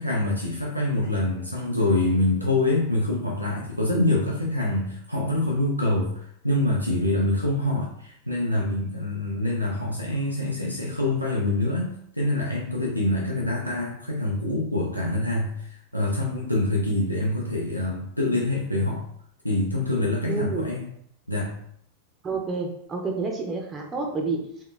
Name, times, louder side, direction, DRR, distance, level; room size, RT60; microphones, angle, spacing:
voice 1, 0.0-19.1 19.4-20.9 21.3-21.5, left 1 dB, 90° left, -3 dB, 0.4 m, -25 dB
voice 2, 20.3-20.7 22.2-24.4, right 4 dB, 20° right, 1 dB, 0.4 m, -29 dB
3.7 x 2.0 x 2.2 m, 0.68 s
figure-of-eight pair, 90°, 0 cm